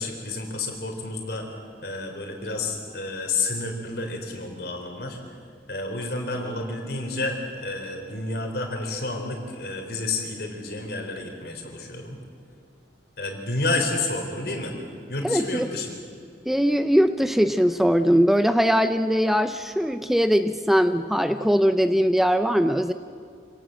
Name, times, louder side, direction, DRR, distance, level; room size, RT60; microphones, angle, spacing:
voice 1, 0.0-1.5 1.8-5.2 5.7-12.2 13.2-14.7 15.1-16.0, left 2 dB, 60° left, 2 dB, 4.0 m, -30 dB
voice 2, 15.2-15.7 16.5-22.9, equal, ahead, 9 dB, 0.5 m, -21 dB
26.5 x 17.5 x 7.8 m, 2.4 s
head